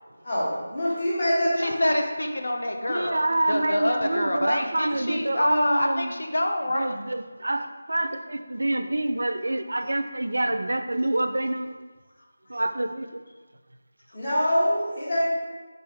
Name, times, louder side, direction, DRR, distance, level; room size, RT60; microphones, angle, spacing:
voice 1, 0.2-1.8 14.1-15.3, equal, 35° left, -7 dB, 1.2 m, -25 dB
voice 2, 1.6-6.9, left 1 dB, 85° left, 3 dB, 0.5 m, -26 dB
voice 3, 2.9-6.1 6.7-11.8 12.5-13.2, right 1 dB, 90° right, 8 dB, 0.3 m, -27 dB
3.8 x 3.7 x 3.3 m, 1.4 s
figure-of-eight pair, 175°, 0 cm